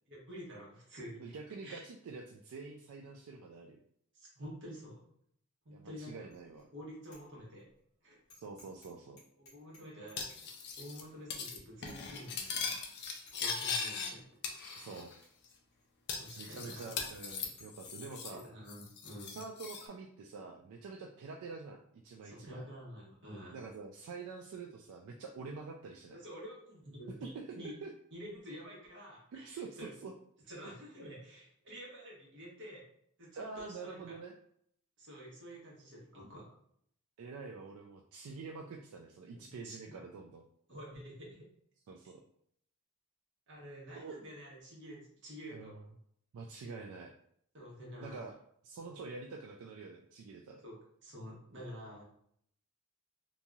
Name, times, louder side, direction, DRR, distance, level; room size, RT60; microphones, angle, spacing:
voice 1, 0.1-1.3 1.6-1.8 4.1-5.0 5.6-6.1 6.7-7.7 8.0-8.2 9.4-10.2 10.8-12.7 13.3-14.3 14.6-14.9 16.1-16.9 18.5-19.4 22.2-23.6 26.1-27.7 28.1-29.9 30.5-32.9 33.2-34.1 35.0-36.5 39.3-40.0 40.7-41.4 43.5-45.7 47.5-48.3 50.6-50.8 51.0-52.0, equal, 60° right, -4 dB, 1.1 m, -49 dB
voice 2, 1.2-3.8 5.7-6.7 8.3-9.2 14.7-15.1 16.4-18.4 19.3-22.6 23.5-26.2 27.2-27.9 29.3-30.1 33.3-34.3 37.2-40.4 41.9-42.2 43.9-44.2 45.5-45.8 46.3-47.1 48.0-48.4 48.6-50.6, right 4 dB, 85° right, 2 dB, 0.3 m, -46 dB
Bicycle bell, 6.3-6.6 7.0-7.2 7.6-7.7 8.3-8.9 9.2-10.5 10.8-10.9 11.3-11.4 11.9-12.1 12.4-12.6 12.8-13.6 14.1-14.2 14.9-15.0 15.2-15.3 15.7-15.8 16.2-18.2, left 2 dB, 75° left, 1.1 m, -59 dB
Cutlery silverware, 10.2-11.0 11.3-11.6 11.8-14.1 14.4-15.1 15.4-15.5 16.1-18.4 18.7-19.8, left 5 dB, 50° left, 0.4 m, -40 dB
2.9 x 2.6 x 2.3 m, 0.67 s
head